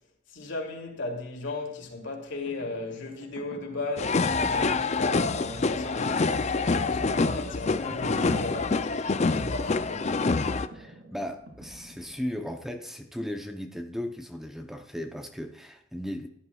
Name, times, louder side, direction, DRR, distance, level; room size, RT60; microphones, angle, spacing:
voice 1, 0.3-10.1, left 2 dB, 70° left, 2.9 m, -36 dB
sound 1, 2.2-12.7, right 1 dB, 85° right, 2.6 m, -49 dB
sound 2, 4.0-10.7, left 3 dB, 35° left, 0.5 m, -26 dB
voice 2, 10.7-16.3, equal, ahead, 0.7 m, -36 dB
16.0 x 11.0 x 2.4 m
head